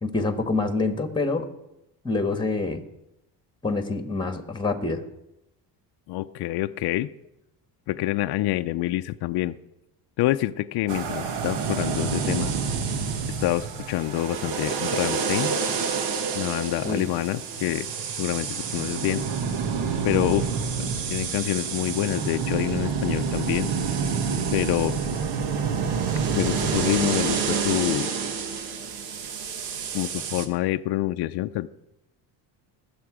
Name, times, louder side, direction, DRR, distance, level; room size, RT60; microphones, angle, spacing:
voice 1, 0.0-1.5 2.0-2.8 3.6-5.0 16.8-17.1, left 3 dB, 10° left, 8 dB, 1.4 m, -26 dB
voice 2, 6.1-7.1 7.9-9.6 10.2-12.5 13.3-15.6 16.4-17.9 18.2-19.2 20.0-23.7 24.5-25.0 26.3-28.1 29.9-31.7, left 15 dB, 65° left, 8 dB, 0.6 m, -27 dB
sound 1, 10.9-30.5, right 6 dB, 75° right, 1.4 m, -28 dB
20.5 x 7.0 x 4.9 m, 0.87 s
cardioid pair, 100°, 42 cm